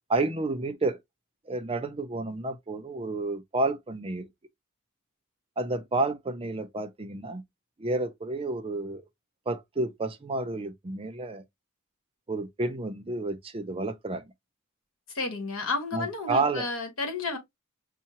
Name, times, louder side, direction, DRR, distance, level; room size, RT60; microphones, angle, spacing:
voice 1, 0.1-1.0 1.5-4.3 5.6-7.4 7.8-9.0 9.5-11.4 12.3-14.3 15.9-16.7, right 2 dB, 25° right, 0.5 m, -30 dB
voice 2, 15.1-17.4, left 3 dB, 70° left, 1.4 m, -31 dB
5.5 x 2.1 x 2.9 m
head